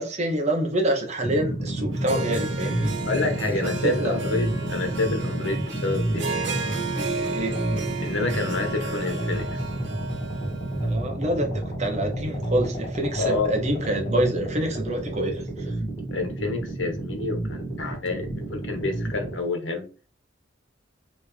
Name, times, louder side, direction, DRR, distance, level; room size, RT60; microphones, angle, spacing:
voice 1, 0.0-2.9 3.6-4.2 7.3-7.7 10.8-15.7, right 1 dB, 35° right, 2 dB, 1.1 m, -27 dB
sound 1, 1.2-19.4, right 1 dB, 30° left, 1.5 m, -30 dB
Harp, 1.9-10.9, right 3 dB, 70° right, 0.9 m, -33 dB
voice 2, 3.1-6.3 8.0-9.6 13.2-13.6 16.1-19.8, left 3 dB, 90° left, 5 dB, 1.2 m, -28 dB
3.6 x 3.1 x 4.4 m, 0.36 s
head